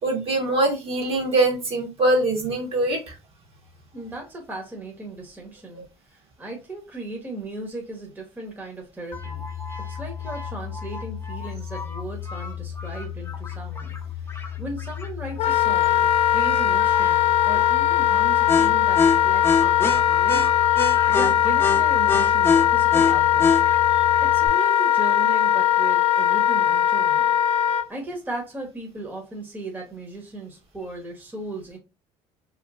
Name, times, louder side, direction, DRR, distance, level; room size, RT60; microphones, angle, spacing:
voice 1, 0.0-3.1 20.8-21.1, right 2 dB, 50° right, 2 dB, 1.5 m, -23 dB
voice 2, 3.9-9.4 9.9-14.0 14.2-20.5 21.1-23.5 24.2-27.3 27.9-31.8, right 2 dB, 15° right, 0 dB, 1.1 m, -36 dB
sound 1, 9.1-24.5, left 5 dB, 20° left, 0.8 m, -28 dB
Wind instrument woodwind instrument, 15.4-27.8, left 11 dB, 55° left, 0.4 m, -20 dB
3.0 x 3.0 x 2.5 m, 0.27 s
cardioid pair, 100°, 12 cm